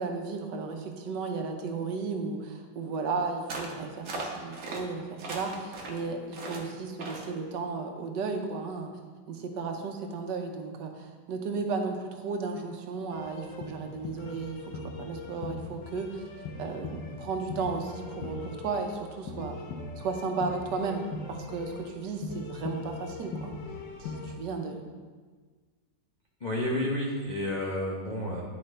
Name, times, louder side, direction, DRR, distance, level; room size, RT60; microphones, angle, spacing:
voice 1, 0.0-8.9 9.3-16.1 16.6-19.5 20.0-23.6 24.0-24.8, right 4 dB, 75° right, 4 dB, 1.3 m, -34 dB
sound 1, 3.5-3.8 4.1-4.8 5.2-6.0 6.3-6.6 7.0-7.3, right 2 dB, 50° right, 1.1 m, -38 dB
sound 2, 13.1-24.4, left 3 dB, 85° left, 1.4 m, -40 dB
voice 2, 26.4-28.4, left 1 dB, 50° left, -5 dB, 0.5 m, -30 dB
10.0 x 4.8 x 3.2 m, 1.5 s
omnidirectional pair, 1.9 m